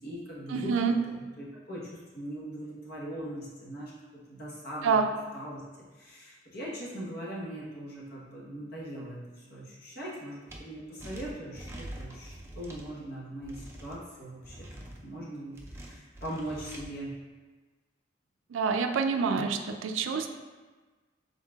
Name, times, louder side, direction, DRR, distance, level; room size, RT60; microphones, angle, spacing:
voice 1, 0.0-5.0 5.3-5.6 5.9-14.7 15.0-17.1, right 1 dB, 55° left, -5 dB, 1.1 m, -40 dB
voice 2, 0.5-1.0 4.8-5.1 18.5-20.3, right 5 dB, 85° right, 6 dB, 0.4 m, -27 dB
sound 1, 10.5-10.6 11.0-12.9 13.4-14.0 14.4-15.0 15.5-16.8, right 1 dB, 15° right, 0.4 m, -44 dB
5.5 x 3.9 x 2.3 m, 1.3 s
head